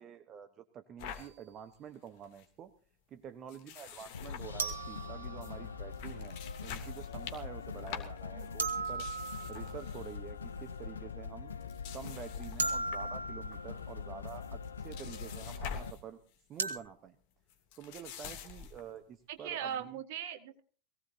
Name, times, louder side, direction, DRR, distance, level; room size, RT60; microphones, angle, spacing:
voice 1, 0.0-2.7 3.1-9.1 9.5-11.5 11.9-16.2 16.5-17.2 17.8-20.0, right 8 dB, 30° right, 11 dB, 1.1 m, -48 dB
sound 1, 1.0-1.3 1.7-1.8 2.1-2.5 3.5-5.1 5.4-5.5 5.9-10.2 10.5-10.8 11.5-13.1 13.5-13.9 14.3-16.0 16.3-16.6 17.5-18.9, left 7 dB, 45° left, 2.9 m, -47 dB
sound 2, 1.2-1.3 4.6-5.9 8.6-10.0 12.6-13.8 16.6-16.8, right 4 dB, 70° right, 2.3 m, -37 dB
sound 3, 4.1-15.9, left 6 dB, 70° left, 0.8 m, -43 dB
voice 2, 19.3-20.6, right 9 dB, 50° right, 9 dB, 2.0 m, -39 dB
22.0 x 17.5 x 2.8 m, 0.39 s
figure-of-eight pair, 90°, 0 cm